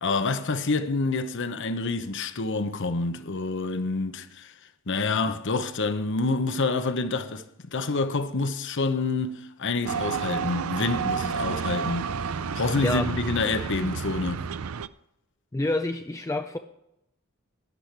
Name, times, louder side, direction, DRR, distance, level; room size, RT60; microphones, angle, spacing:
voice 1, 0.0-4.5 4.9-12.1 12.6-14.5, left 3 dB, 60° left, 0.9 m, -27 dB
sound 1, 9.9-14.9, right 6 dB, 80° right, 0.5 m, -30 dB
voice 2, 12.8-13.1 15.5-16.6, left 2 dB, 15° left, 0.5 m, -28 dB
12.5 x 10.5 x 4.6 m
head